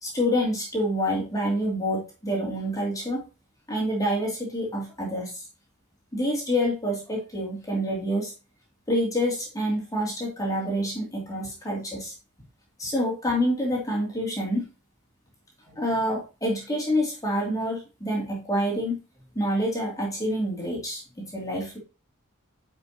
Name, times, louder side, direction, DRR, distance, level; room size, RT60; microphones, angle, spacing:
voice 1, 0.0-3.2 3.7-5.5 6.1-8.3 8.9-12.1 12.8-14.6 15.7-19.0 19.3-21.8, equal, 15° left, -3 dB, 2.7 m, -27 dB
10.0 x 5.3 x 2.9 m, 0.31 s
head